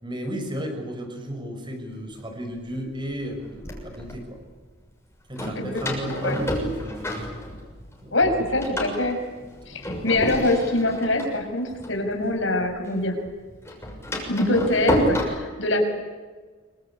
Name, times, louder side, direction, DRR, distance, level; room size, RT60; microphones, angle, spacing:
voice 1, 0.0-4.3 5.3-7.2 8.0-8.2 9.4-9.9, equal, 25° right, 4 dB, 6.2 m, -34 dB
Door, 2.2-2.3 3.0-4.2 5.4-7.9 8.2-12.7 13.0-15.2, equal, 15° left, 6.6 m, -30 dB
voice 2, 8.1-9.2 9.7-13.1 14.2-15.8, left 2 dB, 65° left, 4 dB, 6.2 m, -24 dB
26.5 x 24.5 x 8.8 m, 1.4 s
head